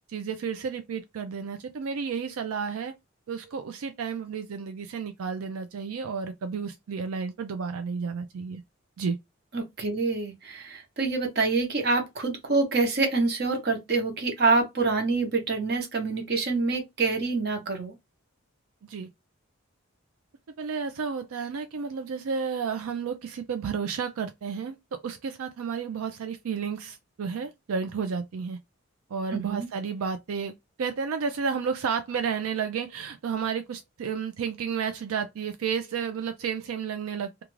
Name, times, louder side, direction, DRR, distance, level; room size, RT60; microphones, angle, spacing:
voice 1, 0.1-2.9 3.3-8.6 9.0-9.2 18.9-19.1 20.6-28.6 29.1-30.5 30.8-37.4, right 6 dB, 85° right, 0.4 m, -32 dB
voice 2, 9.5-17.9 29.3-29.7, right 3 dB, 50° right, 0.9 m, -26 dB
2.4 x 2.4 x 3.0 m
head